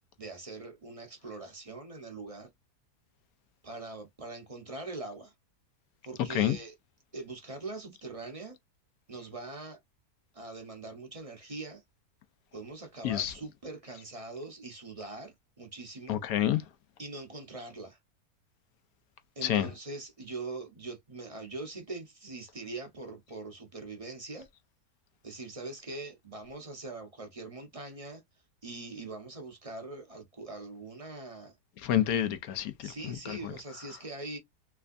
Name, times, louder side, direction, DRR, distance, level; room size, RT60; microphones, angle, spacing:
voice 1, 0.2-2.5 3.6-5.3 6.0-6.7 7.1-8.6 9.1-9.8 10.3-11.8 12.5-16.2 17.0-18.0 19.4-24.5 25.2-28.2 28.6-31.5 32.8-34.4, right 3 dB, 30° right, 0.6 m, -42 dB
voice 2, 16.1-16.6 19.4-19.7 31.8-33.5, left 11 dB, 70° left, 1.0 m, -29 dB
3.3 x 3.3 x 2.5 m
omnidirectional pair, 1.7 m